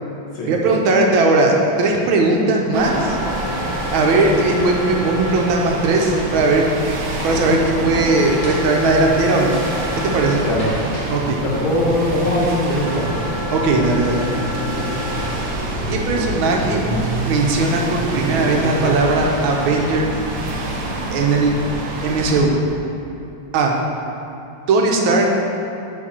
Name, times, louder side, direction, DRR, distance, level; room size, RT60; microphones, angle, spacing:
voice 1, 0.5-3.2 3.9-6.6 7.2-9.6 10.1-10.4 11.1-11.4 13.5-14.2 15.9-16.8 17.2-20.1 21.1-21.5 22.0-22.5 23.5-23.7 24.7-25.3, right 3 dB, 80° right, 0 dB, 1.6 m, -18 dB
sound 1, 2.7-22.4, right 1 dB, 55° right, 1.0 m, -26 dB
sound 2, 2.8-5.3 7.8-10.3 12.8-15.3, left 4 dB, 60° left, 1.6 m, -32 dB
sound 3, 4.4-11.1, equal, 25° left, 1.2 m, -35 dB
voice 2, 11.4-13.2, left 1 dB, 75° left, -5 dB, 2.2 m, -21 dB
7.3 x 5.3 x 4.3 m, 2.8 s
omnidirectional pair, 2.2 m